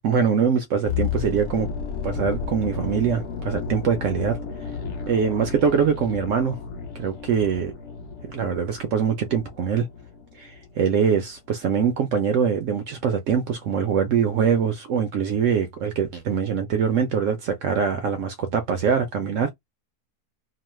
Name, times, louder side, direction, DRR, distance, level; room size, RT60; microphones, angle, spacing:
voice 1, 0.0-1.7 2.0-4.4 5.1-6.6 6.9-7.7 8.3-9.9 10.4-19.5, right 7 dB, 70° right, 0.7 m, -23 dB
sound 1, 0.8-10.8 11.1-11.3, left 6 dB, 55° left, 0.9 m, -33 dB
3.0 x 2.0 x 3.1 m
omnidirectional pair, 1.7 m